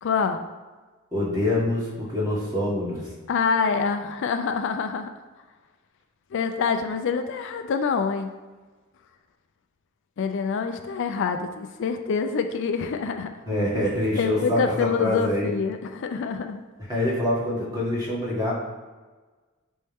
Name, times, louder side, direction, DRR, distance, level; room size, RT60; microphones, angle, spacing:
voice 1, 0.0-0.4 3.3-5.1 6.3-8.3 10.2-13.3 14.1-16.6, left 5 dB, 60° left, 7 dB, 0.4 m, -26 dB
voice 2, 1.1-3.0 13.5-15.5 16.9-18.5, left 1 dB, 15° right, -7 dB, 1.9 m, -25 dB
6.3 x 4.3 x 3.5 m, 1.3 s
head